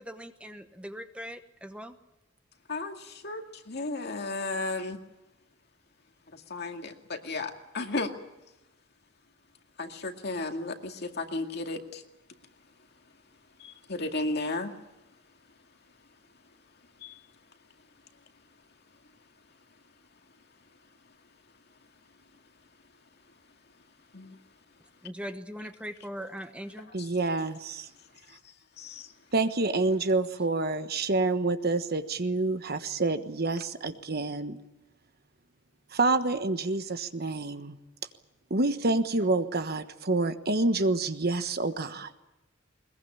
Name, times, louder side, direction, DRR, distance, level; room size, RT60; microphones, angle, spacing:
voice 1, 0.0-2.0 25.0-26.9, equal, 5° right, 8 dB, 1.0 m, -40 dB
voice 2, 2.7-5.0 6.3-8.1 9.8-12.0 13.6-14.7 17.0-17.2 24.1-24.4 28.8-29.1, left 2 dB, 55° left, 4 dB, 2.2 m, -34 dB
voice 3, 26.9-27.9 29.3-34.6 35.9-37.8 38.5-42.1, right 3 dB, 50° right, 9 dB, 1.3 m, -28 dB
21.5 x 21.5 x 8.6 m, 0.98 s
head